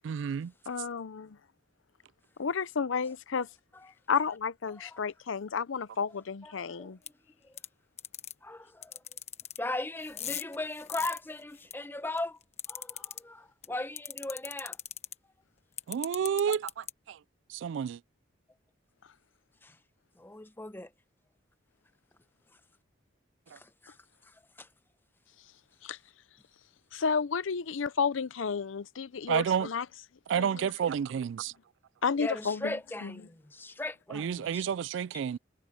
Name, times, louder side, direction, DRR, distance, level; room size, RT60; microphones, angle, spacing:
voice 1, 0.0-0.5 15.9-17.2 17.5-18.0 23.5-23.6 29.3-29.7 30.3-31.5 34.1-35.4, right 8 dB, 70° right, 0.3 m, -30 dB
voice 2, 0.7-1.4 2.4-3.5 4.1-7.0 25.8-26.0 26.9-29.8 30.4-30.5 32.0-32.7 33.0-33.1, left 5 dB, 85° left, 0.6 m, -31 dB
voice 3, 4.7-5.0 6.4-7.0 7.5-7.6 8.4-9.0 9.6-12.4 12.7-14.8 19.6-19.8 20.2-20.9 23.5-23.9 24.6-24.7 32.2-34.6, left 2 dB, 10° left, 0.8 m, -38 dB
sound 1, 7.1-7.2 7.6-7.7 8.0-8.3 8.8-9.6 10.0-11.7 12.2-13.2 13.6-13.7 14.0-15.1 15.8-16.9, left 10 dB, 35° left, 1.1 m, -38 dB
head